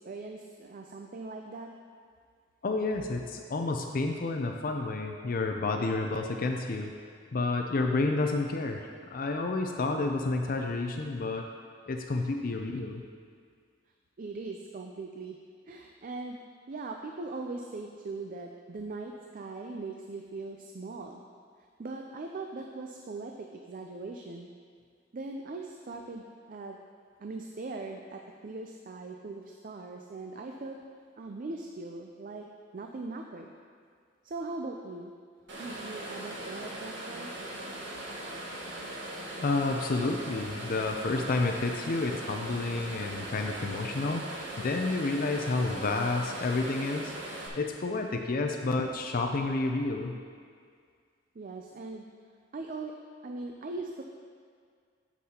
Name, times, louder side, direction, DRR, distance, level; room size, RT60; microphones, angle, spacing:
voice 1, 0.0-1.7 14.2-15.4 15.7-16.4 16.7-21.2 21.8-24.5 25.1-26.8 27.2-30.8 31.2-32.5 32.7-33.5 34.2-35.1 35.5-37.3 51.3-52.0 52.5-52.9 53.2-54.0, right 3 dB, 45° right, 3 dB, 0.4 m, -40 dB
voice 2, 2.6-6.9 7.3-11.5 11.9-13.0 39.4-47.1 47.5-50.2, left 3 dB, 50° left, 3 dB, 0.5 m, -30 dB
sound 1, 35.5-47.5, right 1 dB, 75° right, 1.4 m, -40 dB
9.9 x 7.4 x 2.9 m, 2.1 s
head